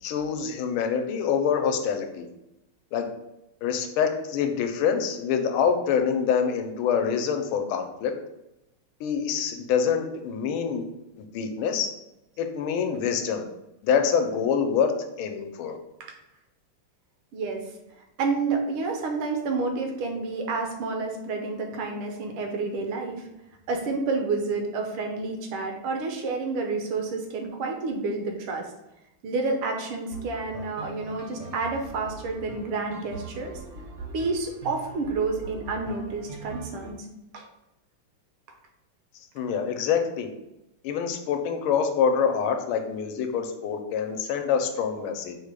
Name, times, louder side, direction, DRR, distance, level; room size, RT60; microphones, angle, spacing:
voice 1, 0.0-2.3 2.9-3.1 3.6-8.1 9.0-10.8 11.2-11.9 12.4-13.4 13.8-14.9 15.2-15.8 39.3-40.3 40.8-45.4, left 7 dB, 80° left, 5 dB, 1.4 m, -26 dB
voice 2, 18.2-23.2 23.7-28.7 29.2-33.5 34.1-37.0 37.3-37.5, right 3 dB, 80° right, 2 dB, 1.6 m, -29 dB
sound 1, 30.1-36.9, right 3 dB, 60° right, 0.8 m, -42 dB
4.8 x 2.2 x 4.8 m, 0.90 s
omnidirectional pair, 2.3 m